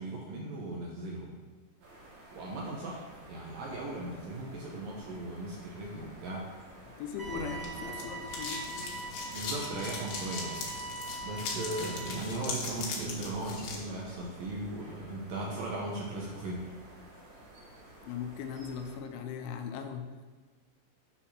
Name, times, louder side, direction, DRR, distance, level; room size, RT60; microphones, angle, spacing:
voice 1, 0.0-1.4 2.3-6.5 7.3-7.6 9.3-10.6 11.2-16.7, right 2 dB, 75° right, -3 dB, 2.0 m, -38 dB
sound 1, 1.8-19.0, right 1 dB, 55° right, 4.0 m, -53 dB
voice 2, 7.0-8.9 18.0-20.3, left 7 dB, 85° left, 6 dB, 3.0 m, -39 dB
sound 2, 7.2-13.8, left 4 dB, 70° left, 3.3 m, -40 dB
sound 3, 7.2-12.2, right 3 dB, 15° left, 0.8 m, -42 dB
8.9 x 4.3 x 5.8 m, 1.4 s
omnidirectional pair, 5.4 m